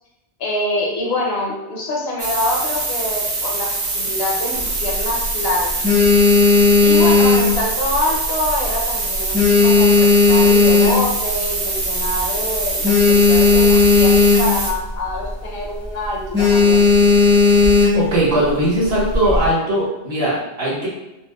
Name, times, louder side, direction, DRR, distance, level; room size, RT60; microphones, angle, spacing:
voice 1, 0.4-5.8 6.8-16.8, left 1 dB, 65° left, -2 dB, 0.8 m, -25 dB
sound 1, 2.2-14.7, right 3 dB, 90° right, 1.0 m, -24 dB
sound 2, 4.5-5.3 5.7-8.2 8.4-8.8 9.1-11.4 11.8-11.9 12.1-12.2 12.5-14.7 15.1-15.3 15.6-15.9 16.3-18.2 18.9-19.5, left 4 dB, 10° right, 0.6 m, -14 dB
voice 2, 17.9-20.9, right 1 dB, 60° right, -7 dB, 1.2 m, -19 dB
4.1 x 2.1 x 2.2 m, 0.97 s
omnidirectional pair, 1.1 m